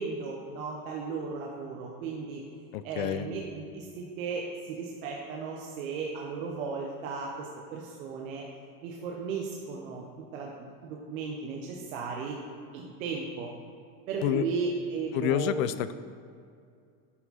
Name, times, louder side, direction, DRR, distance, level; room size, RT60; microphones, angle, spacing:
voice 1, 0.0-2.4 2.8-8.4 8.8-10.0 10.3-10.5 10.9-12.4 12.7-13.5 14.1-15.5, right 4 dB, 85° right, -1 dB, 1.1 m, -35 dB
voice 2, 2.7-3.3 14.2-14.4 15.1-15.9, left 12 dB, 80° left, 14 dB, 0.6 m, -28 dB
11.0 x 4.6 x 4.2 m, 2.3 s
supercardioid pair, 115°, 40 cm